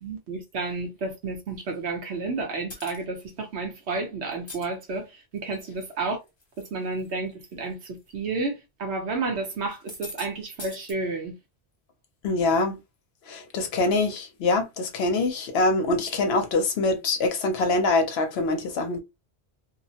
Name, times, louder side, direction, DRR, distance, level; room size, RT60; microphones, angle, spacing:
voice 1, 0.0-5.1 5.3-6.2 6.6-11.3, right 3 dB, 75° right, 1.1 m, -31 dB
sound 1, 2.7-3.0 4.3-4.7 5.4-5.8 6.3-6.7 7.0-7.1 8.0-8.1 9.7-10.3 10.6-10.9, left 2 dB, 30° left, 0.7 m, -41 dB
voice 2, 12.2-12.8 13.3-19.0, left 2 dB, 70° left, 0.9 m, -24 dB
2.8 x 2.0 x 2.7 m
omnidirectional pair, 1.1 m